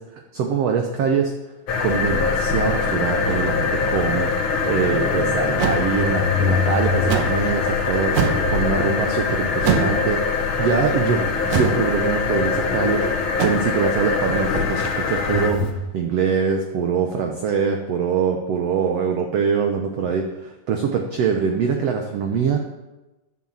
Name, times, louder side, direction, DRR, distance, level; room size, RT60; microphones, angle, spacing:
voice 1, 0.3-1.3 1.8-4.3 4.7-22.6, right 6 dB, 85° right, 4 dB, 1.4 m, -23 dB
sound 1, 1.7-15.7, left 4 dB, 90° left, 1.1 m, -22 dB
sound 2, 5.6-5.8 7.1-7.4 8.1-8.5 9.6-10.0 11.5-11.8 13.4-13.5, right 7 dB, 65° right, 1.8 m, -22 dB
9.8 x 9.1 x 7.4 m, 1.1 s
omnidirectional pair, 4.2 m